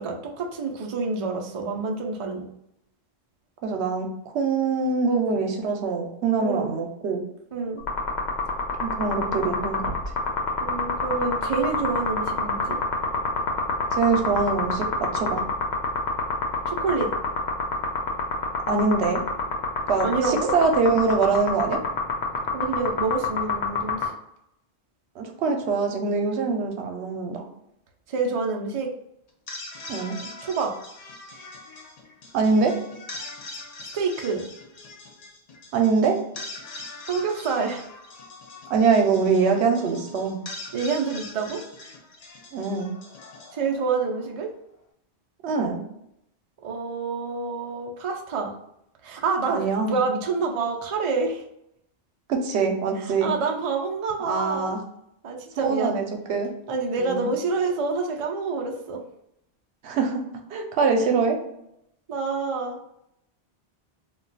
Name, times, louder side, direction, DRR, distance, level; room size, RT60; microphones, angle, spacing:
voice 1, 0.0-2.5 6.4-6.7 7.5-7.8 10.6-12.8 16.7-17.1 20.0-20.5 22.5-24.1 28.1-28.9 30.4-30.7 33.9-34.5 37.1-37.9 40.7-41.6 43.5-44.5 46.6-48.5 49.0-51.4 53.1-54.7 55.2-56.0 56.7-59.0 62.1-62.8, right 4 dB, 50° right, 1 dB, 0.4 m, -27 dB
voice 2, 3.6-4.1 4.3-7.2 8.8-9.9 13.9-14.9 15.1-15.4 18.7-19.2 19.9-21.8 25.2-27.4 29.9-30.2 32.3-32.8 35.7-36.2 38.7-40.4 42.5-42.9 45.4-45.8 49.5-49.9 52.3-53.3 54.2-54.8 55.7-56.5 57.0-57.3 59.8-60.2 60.5-61.4, right 4 dB, 85° right, 4 dB, 0.9 m, -23 dB
sound 1, 7.8-24.1, left 5 dB, 90° left, 0.9 m, -26 dB
sound 2, 29.3-44.5, left 2 dB, 55° left, 0.4 m, -42 dB
2.2 x 2.2 x 3.8 m, 0.78 s
omnidirectional pair, 1.1 m